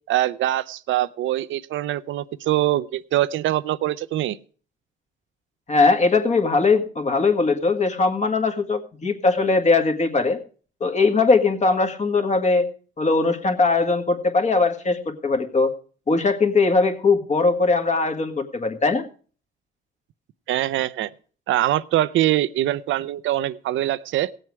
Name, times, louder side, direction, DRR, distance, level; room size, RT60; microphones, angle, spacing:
voice 1, 0.1-4.4 20.5-21.1 21.5-24.3, right 14 dB, 75° right, 17 dB, 0.6 m, -23 dB
voice 2, 5.7-10.4 10.8-12.7 13.0-15.7 16.1-19.1, left 3 dB, 35° left, 5 dB, 1.8 m, -20 dB
17.0 x 7.7 x 4.7 m, 0.41 s
cardioid pair, 90°, 20 cm